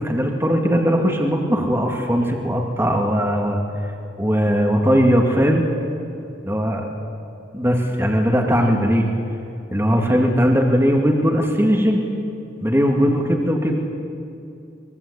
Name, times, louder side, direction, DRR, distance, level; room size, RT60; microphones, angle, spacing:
voice 1, 0.0-3.6 4.2-5.6 6.5-6.8 7.5-9.1 9.7-12.0 12.6-13.8, equal, 15° right, 1 dB, 2.4 m, -19 dB
24.0 x 22.0 x 8.4 m, 2.6 s
head